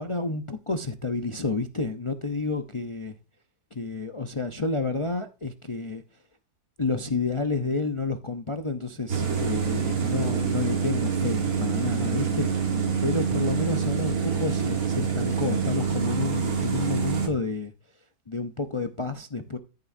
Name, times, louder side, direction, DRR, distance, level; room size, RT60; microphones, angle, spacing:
voice 1, 0.0-3.1 3.7-6.0 6.8-17.7 18.3-19.6, left 3 dB, 40° left, 0.4 m, -30 dB
sound 1, 9.1-17.3, right 6 dB, 60° right, 2.1 m, -26 dB
14.0 x 6.8 x 2.6 m
omnidirectional pair, 1.7 m